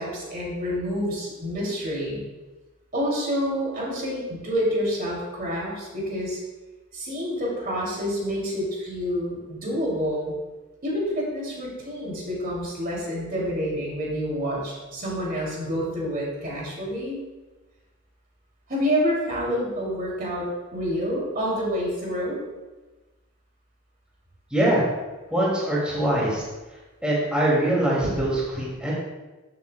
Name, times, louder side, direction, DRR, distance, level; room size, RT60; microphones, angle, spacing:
voice 1, 0.0-2.2 2.9-6.4 6.9-10.4 10.8-17.2 18.7-20.4 20.7-22.4, equal, 45° right, -4 dB, 2.7 m, -28 dB
voice 2, 24.5-24.8 25.3-26.4 27.0-28.9, right 1 dB, 5° right, -6 dB, 2.4 m, -23 dB
14.0 x 7.7 x 2.3 m, 1.2 s
head